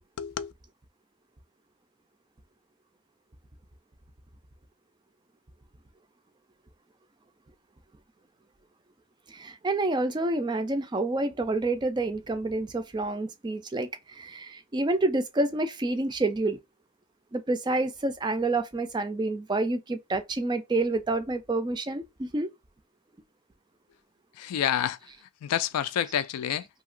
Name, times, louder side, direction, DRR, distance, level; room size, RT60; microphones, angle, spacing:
voice 1, 0.2-0.5 24.4-25.0 25.4-26.7, left 9 dB, 90° left, 0.3 m, -28 dB
voice 2, 9.3-16.6 17.3-22.5, right 2 dB, 20° right, 0.3 m, -28 dB
2.9 x 2.7 x 2.4 m
head